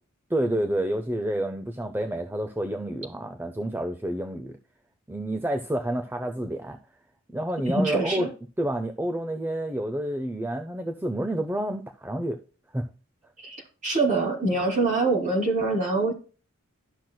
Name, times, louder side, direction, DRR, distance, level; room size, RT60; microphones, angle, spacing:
voice 1, 0.3-4.6 5.1-6.8 7.3-8.3 8.6-12.4 12.7-12.9, right 1 dB, 10° right, 0.5 m, -29 dB
voice 2, 7.6-8.3 13.4-16.1, right 3 dB, 35° right, 2.9 m, -25 dB
12.0 x 6.1 x 2.2 m
head